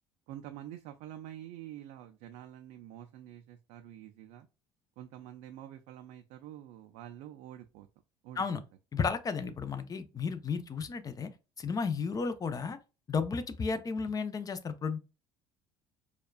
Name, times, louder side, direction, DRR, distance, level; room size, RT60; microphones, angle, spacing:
voice 1, 0.3-4.5 5.0-7.9 8.2-8.4, right 12 dB, 60° right, 0.4 m, -47 dB
voice 2, 8.9-11.3 11.6-12.8 13.1-15.0, left 5 dB, 25° left, 0.6 m, -33 dB
4.3 x 2.3 x 2.3 m
hypercardioid pair, 60°, 13 cm